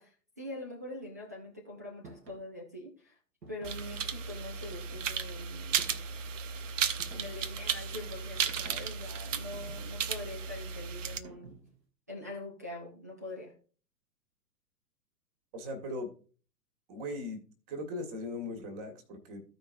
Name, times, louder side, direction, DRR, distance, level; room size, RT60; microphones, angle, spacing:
voice 1, 0.0-3.2 3.5-5.9 7.1-11.7 12.1-13.6, left 1 dB, 10° right, 0.4 m, -44 dB
sound 1, 2.0-2.5 3.4-3.9 4.7-5.3 5.8-6.2 7.0-7.6 8.5-9.0 9.5-10.2 11.2-11.8, right 3 dB, 75° right, 1.7 m, -53 dB
sound 2, 3.6-11.2, right 7 dB, 50° right, 0.8 m, -35 dB
voice 2, 15.5-16.1 16.9-17.4 17.7-19.4, left 1 dB, 25° right, 1.9 m, -38 dB
15.0 x 5.1 x 2.6 m
figure-of-eight pair, 120°, 50 cm